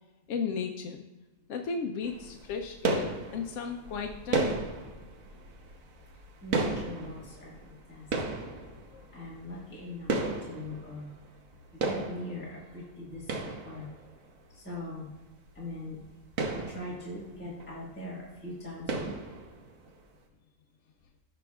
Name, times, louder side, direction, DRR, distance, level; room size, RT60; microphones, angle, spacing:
voice 1, 0.3-1.0 1.5-4.6 8.9-9.0, left 5 dB, 70° left, 3 dB, 0.9 m, -35 dB
sound 1, 2.0-11.5 11.8-14.3 14.7-14.8 15.1-15.2 15.5-15.7 16.1-17.9 18.2-18.4 18.9-19.9, right 3 dB, 85° right, 1.3 m, -34 dB
voice 2, 6.4-8.3 9.1-11.1 11.7-13.9 14.5-15.1 15.5-16.0 16.5-19.2, left 1 dB, 10° left, -6 dB, 1.5 m, -41 dB
16.0 x 6.1 x 2.4 m, 1.1 s
omnidirectional pair, 1.4 m